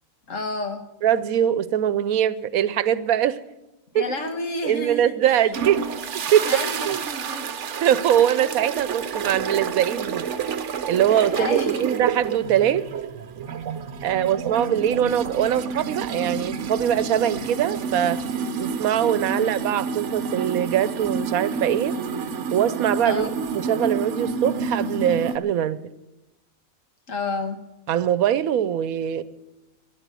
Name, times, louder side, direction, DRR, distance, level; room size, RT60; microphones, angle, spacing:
voice 1, 0.3-0.8 3.9-5.5 6.5-7.5 8.2-8.4 11.1-11.8 14.0-14.4 19.3-19.4 23.0-23.3 27.1-27.6, left 2 dB, 65° left, 7 dB, 1.7 m, -31 dB
voice 2, 1.0-3.4 3.9-4.0 4.6-5.9 6.3-6.5 6.9-7.0 7.8-10.3 10.9-12.9 14.0-18.2 18.6-22.0 22.5-23.2 23.7-25.8 27.9-29.2, right 10 dB, 80° right, 16 dB, 1.1 m, -22 dB
sound 1, 5.5-25.4, right 5 dB, 60° right, 1.1 m, -29 dB
13.5 x 11.0 x 8.2 m, 1.0 s
omnidirectional pair, 1.5 m